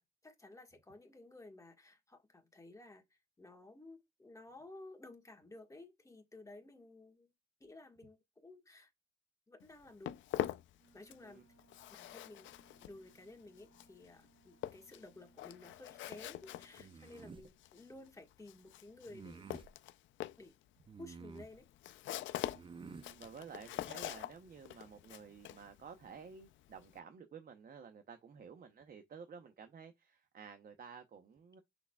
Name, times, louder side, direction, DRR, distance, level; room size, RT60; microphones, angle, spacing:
voice 1, 0.0-7.3 7.6-8.9 9.5-10.2 10.9-11.4 11.9-12.5 12.8-19.5 20.4-20.6 21.0-21.7, left 2 dB, 15° left, 1.5 m, -55 dB
Walk footsteps, 9.6-11.3 11.6-27.0, left 13 dB, 75° left, 0.4 m, -45 dB
Wind instrument woodwind instrument, 10.8-16.8, right 4 dB, 85° right, 2.4 m, -69 dB
sound 1, 16.8-17.5 19.1-19.7 20.9-21.6 22.5-23.1, right 5 dB, 25° right, 0.4 m, -51 dB
voice 2, 22.9-31.6, right 6 dB, 50° right, 0.8 m, -53 dB
5.9 x 3.9 x 2.3 m
cardioid pair, 90°, 20 cm